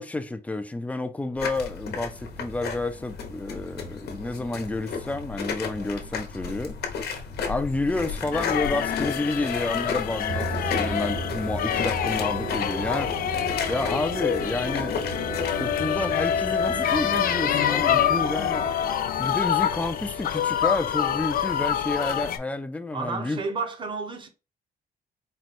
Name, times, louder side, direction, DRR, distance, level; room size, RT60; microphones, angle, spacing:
voice 1, 0.0-6.8 7.5-13.2 13.7-15.0 15.6-18.7 19.2-23.4, left 2 dB, 10° left, 0.4 m, -30 dB
sound 1, 1.4-15.7, left 5 dB, 85° left, 1.0 m, -34 dB
sound 2, 8.3-22.4, left 9 dB, 65° left, 0.5 m, -26 dB
sound 3, 10.3-18.7, right 4 dB, 60° right, 1.1 m, -35 dB
voice 2, 22.9-24.3, right 4 dB, 30° right, 0.8 m, -31 dB
4.4 x 2.2 x 4.2 m
cardioid pair, 165°, 16 cm